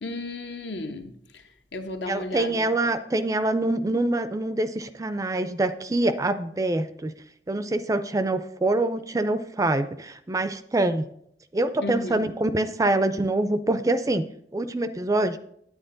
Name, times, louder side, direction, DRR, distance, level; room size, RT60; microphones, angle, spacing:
voice 1, 0.0-1.4 1.7-2.6 11.8-12.2, left 2 dB, 75° left, 1.0 m, -34 dB
voice 2, 2.1-7.1 7.5-11.0 11.5-14.2 14.5-15.4, right 2 dB, 20° right, 0.4 m, -25 dB
9.4 x 8.7 x 3.9 m
head